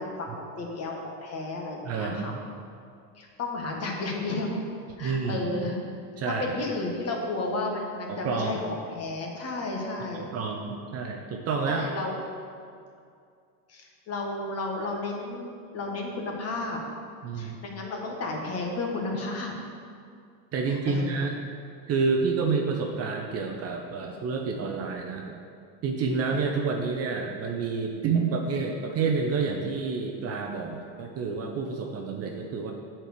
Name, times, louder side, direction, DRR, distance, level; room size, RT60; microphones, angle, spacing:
voice 1, 0.0-2.4 3.1-4.6 5.0-5.8 6.4-10.6 11.7-12.2 13.7-16.8 17.3-19.5 20.7-21.1 26.2-26.4, left 2 dB, 30° left, 0 dB, 1.4 m, -33 dB
voice 2, 1.8-2.4 5.0-5.5 6.2-6.5 8.1-8.6 10.1-11.9 17.2-17.6 20.5-21.4 21.9-25.4 25.8-32.7, right 4 dB, 30° right, 2 dB, 0.7 m, -29 dB
7.8 x 4.4 x 6.6 m, 2.3 s
supercardioid pair, 125°, 46 cm